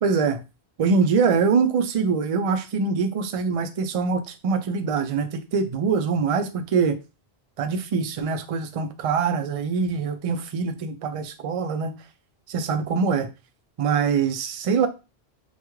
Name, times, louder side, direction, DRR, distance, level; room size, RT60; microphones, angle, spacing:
voice 1, 0.0-0.4 0.8-7.0 7.6-11.9 12.5-13.3 13.8-14.9, right 5 dB, 60° right, 0.3 m, -24 dB
3.4 x 2.3 x 3.0 m
omnidirectional pair, 1.1 m